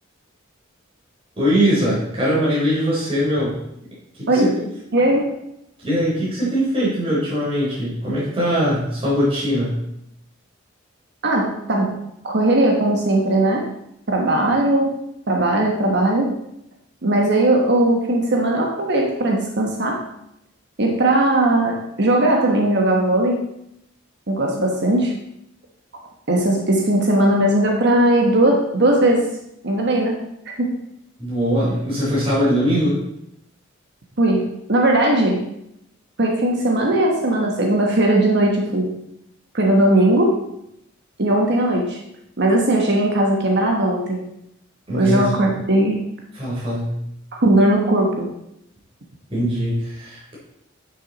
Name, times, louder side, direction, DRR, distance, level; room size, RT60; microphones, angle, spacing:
voice 1, 1.4-3.5 4.1-4.7 5.8-9.8 31.2-33.0 44.9-45.2 46.3-47.0 49.3-50.4, equal, 30° right, -8 dB, 3.8 m, -21 dB
voice 2, 4.9-5.3 11.2-11.9 12.2-13.7 14.1-14.9 15.3-16.3 17.0-20.0 20.8-23.4 24.3-25.1 26.3-29.3 29.6-30.2 30.4-30.7 34.2-35.4 36.2-38.9 39.5-40.4 41.2-42.0 42.4-44.2 44.9-46.0 47.4-48.3, right 1 dB, 55° right, 0 dB, 1.3 m, -18 dB
11.0 x 6.3 x 4.1 m, 0.79 s
head